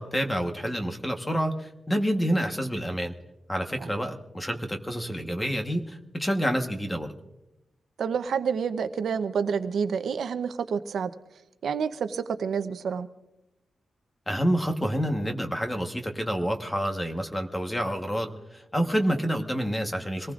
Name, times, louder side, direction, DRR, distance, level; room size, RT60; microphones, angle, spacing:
voice 1, 0.0-3.1 3.5-7.1 14.3-20.3, equal, 10° left, 4 dB, 1.2 m, -28 dB
voice 2, 8.0-11.1 11.6-13.1, right 6 dB, 75° right, 10 dB, 0.7 m, -28 dB
25.5 x 19.0 x 2.5 m, 0.97 s
wide cardioid pair, 175°, 0 cm